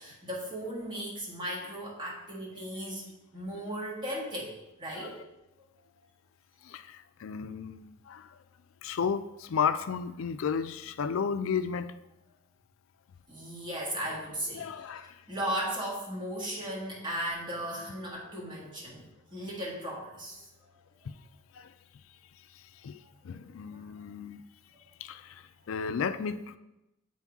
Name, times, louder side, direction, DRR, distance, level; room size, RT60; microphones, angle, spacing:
voice 1, 0.0-5.2 13.3-20.4 23.2-23.4 23.7-23.8, equal, 25° right, -4 dB, 1.6 m, -37 dB
voice 2, 6.6-8.3 8.8-11.9 14.5-15.2 21.1-21.2 21.5-21.7 22.8-24.4 25.0-26.6, left 6 dB, 75° left, 11 dB, 0.4 m, -33 dB
7.1 x 4.5 x 3.5 m, 0.94 s
head